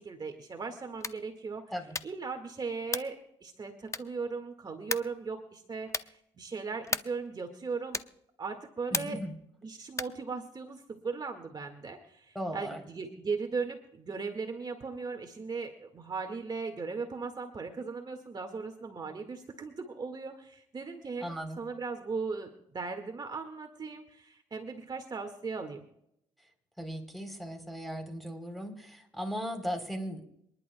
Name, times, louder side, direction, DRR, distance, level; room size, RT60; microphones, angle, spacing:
voice 1, 0.0-1.7 2.0-8.0 8.4-9.2 9.6-25.8, right 4 dB, 35° right, 4 dB, 1.8 m, -38 dB
sound 1, 0.9-1.3 1.9-2.3 2.9-3.2 3.9-4.3 4.9-5.2 5.9-6.2 6.9-7.3 7.9-8.2 8.9-9.3 9.9-10.2, left 4 dB, 25° left, 0.7 m, -36 dB
voice 2, 8.9-9.3 12.4-12.8 21.2-21.7 26.8-30.2, equal, ahead, 5 dB, 3.6 m, -37 dB
27.0 x 11.0 x 2.3 m, 0.75 s
supercardioid pair, 70°, 11 cm